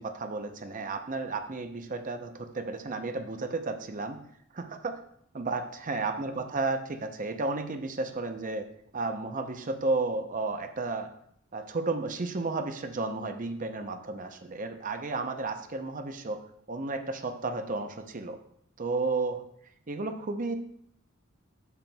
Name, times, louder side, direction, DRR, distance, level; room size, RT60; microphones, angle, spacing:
voice 1, 0.0-4.2 4.5-5.0 5.3-8.7 8.9-11.1 11.5-16.4 16.7-18.4 18.8-19.4 19.9-20.5, right 3 dB, 40° right, 7 dB, 0.7 m, -32 dB
11.0 x 7.8 x 2.3 m, 0.69 s
head